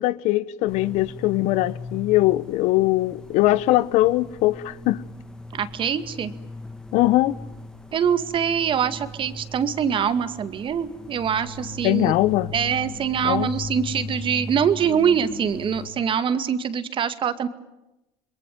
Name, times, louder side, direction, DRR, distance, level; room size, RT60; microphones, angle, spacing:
voice 1, 0.0-5.0 6.9-7.4 11.8-12.5 13.2-13.5, left 17 dB, 65° left, 1.0 m, -21 dB
sound 1, 0.7-15.9, left 3 dB, 5° left, 2.2 m, -38 dB
voice 2, 5.5-6.3 7.9-12.1 12.5-17.5, right 7 dB, 40° right, 2.1 m, -24 dB
27.5 x 22.0 x 9.4 m
supercardioid pair, 95°, 13 cm